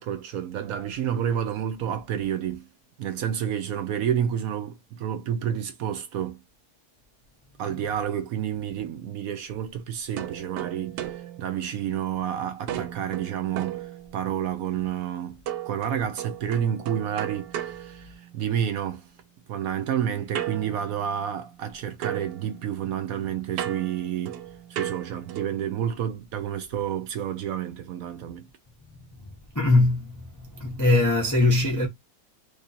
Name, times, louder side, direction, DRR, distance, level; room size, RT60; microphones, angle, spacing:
voice 1, 0.0-2.7 3.0-6.4 7.6-19.1 19.5-24.4 24.7-28.5, right 9 dB, 70° right, 0.9 m, -30 dB
sound 1, 10.2-12.3 12.7-14.5 15.5-18.7 20.3-21.7 22.0-25.7, right 11 dB, 90° right, 1.2 m, -36 dB
voice 2, 29.5-30.2 30.5-31.9, left 2 dB, 25° left, 0.4 m, -21 dB
3.0 x 2.6 x 4.0 m
omnidirectional pair, 1.7 m